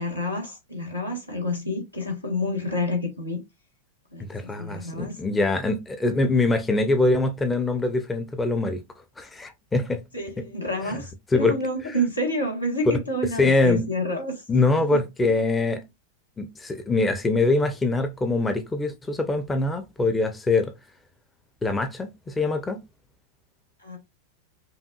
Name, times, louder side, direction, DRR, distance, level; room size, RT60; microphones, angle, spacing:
voice 1, 0.0-3.4 4.1-5.2 10.1-14.4 14.9-15.0 15.6-15.8 23.8-24.0, left 1 dB, 85° left, 1.3 m, -29 dB
voice 2, 4.2-8.8 9.2-10.0 10.4-10.5 10.9-11.0 11.3-11.6 11.8-12.0 13.4-13.9 14.5-15.8 16.4-20.7 21.6-22.8, left 2 dB, 15° left, 0.5 m, -23 dB
5.4 x 2.4 x 2.3 m
figure-of-eight pair, 90°, 0 cm